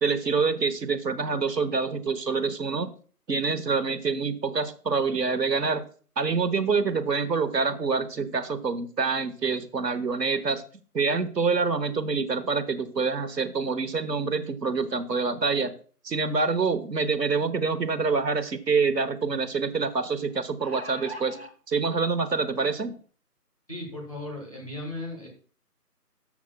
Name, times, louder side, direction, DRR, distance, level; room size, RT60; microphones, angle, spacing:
voice 1, 0.0-2.9 3.3-5.9 6.2-10.6 10.9-15.7 16.0-21.4 21.7-22.9, right 4 dB, 80° right, 11 dB, 1.2 m, -26 dB
sound 1, 18.6-18.7 20.3-21.5 22.4-22.5 22.9-23.0, right 1 dB, 40° right, 0.9 m, -40 dB
voice 2, 23.7-25.3, left 2 dB, 20° left, -1 dB, 1.5 m, -36 dB
13.0 x 7.3 x 2.3 m, 0.41 s
figure-of-eight pair, 175°, 48 cm